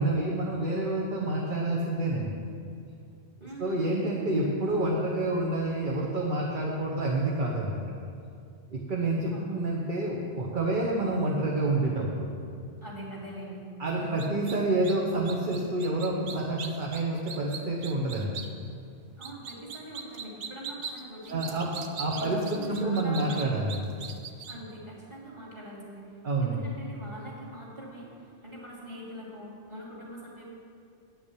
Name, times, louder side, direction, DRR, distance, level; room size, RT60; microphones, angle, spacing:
voice 1, 0.0-2.4 3.6-7.7 8.7-12.3 13.8-18.3 21.3-23.9 26.2-26.7, right 2 dB, 50° right, -2 dB, 1.1 m, -28 dB
voice 2, 3.4-3.8 9.3-9.6 12.8-13.7 14.0-14.2 14.6-14.7 19.2-21.6 22.1-23.5 24.5-30.4, right 1 dB, 25° right, -6 dB, 2.6 m, -43 dB
sound 1, 14.2-14.6 14.8-14.9 15.3-18.5 19.2-24.5, right 6 dB, 75° right, 1.0 m, -39 dB
9.2 x 6.0 x 8.3 m, 2.4 s
omnidirectional pair, 1.1 m